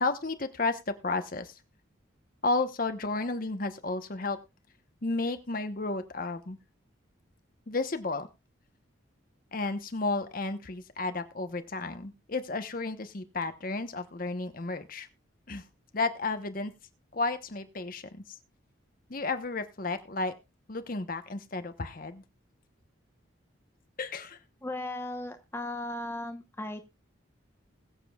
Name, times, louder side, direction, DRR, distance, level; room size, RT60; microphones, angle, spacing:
voice 1, 0.0-1.5 2.4-4.4 5.0-6.6 7.7-8.3 9.5-15.1 15.5-15.6 15.9-16.7 17.1-18.2 19.1-20.3 20.7-22.2 24.0-24.4, left 3 dB, 45° left, 8 dB, 1.0 m, -32 dB
voice 2, 24.6-26.9, left 1 dB, 10° left, 5 dB, 1.0 m, -36 dB
21.5 x 7.6 x 2.4 m, 0.24 s
head